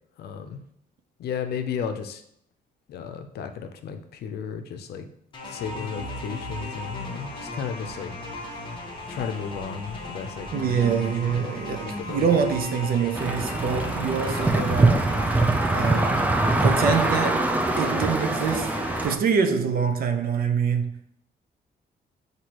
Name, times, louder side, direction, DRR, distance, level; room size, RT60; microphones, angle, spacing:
voice 1, 0.2-0.6 1.2-2.2 2.9-5.1 5.4-8.8 9.0-10.8 11.3-12.4, left 7 dB, 80° left, 0.5 m, -34 dB
sound 1, 5.3-19.0, left 2 dB, 30° left, 0.9 m, -36 dB
voice 2, 10.5-15.4 15.7-16.2 16.6-17.5 17.8-21.0, right 6 dB, 65° right, 0.5 m, -25 dB
sound 2, 13.1-19.2, right 2 dB, 10° right, 0.3 m, -23 dB
6.0 x 2.7 x 2.9 m
cardioid pair, 125°, 16 cm